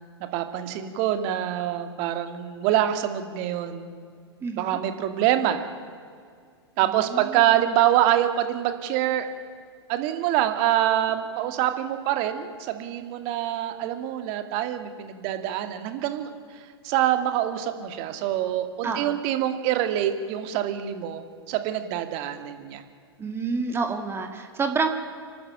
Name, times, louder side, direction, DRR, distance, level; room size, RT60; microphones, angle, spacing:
voice 1, 0.3-3.9 4.6-5.6 6.8-9.3 9.9-16.3 16.8-22.8, right 12 dB, 40° right, 8 dB, 2.2 m, -25 dB
voice 2, 4.4-4.8 6.8-7.5 18.8-19.2 23.2-24.9, right 4 dB, 15° right, 6 dB, 2.2 m, -28 dB
29.5 x 12.5 x 9.2 m, 2.1 s
figure-of-eight pair, 105°, 14 cm